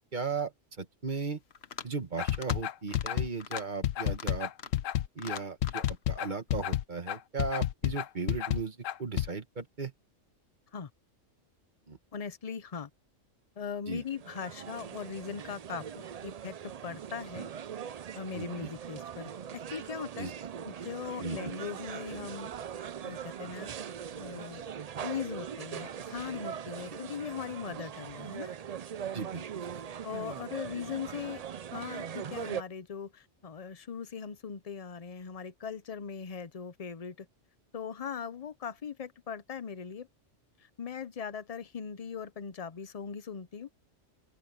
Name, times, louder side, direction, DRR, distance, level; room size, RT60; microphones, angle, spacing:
voice 1, 0.1-0.5 0.8-1.4 1.8-4.5 5.1-9.9 11.9-12.0 13.9-14.0 18.3-18.7 20.2-20.3 21.2-21.4 26.9-27.0 29.1-29.4 29.7-29.8, right 4 dB, 35° right, 1.6 m, -36 dB
sound 1, 1.5-2.0 2.3-2.6 2.9-3.1 3.4-3.6 4.1-4.9 5.2-6.0, left 7 dB, 55° left, 1.2 m, -42 dB
sound 2, 2.2-9.3, left 12 dB, 75° left, 1.0 m, -30 dB
voice 2, 12.1-12.9 13.6-17.5 18.1-19.3 19.7-20.3 20.6-22.5 23.0-23.7 24.2-24.6 25.0-28.5 30.0-31.4 31.7-37.3 37.7-40.1 40.8-43.7, left 7 dB, 35° left, 0.7 m, -40 dB
sound 3, 14.0-32.6, right 8 dB, 65° right, 0.3 m, -41 dB
omnidirectional pair, 1.3 m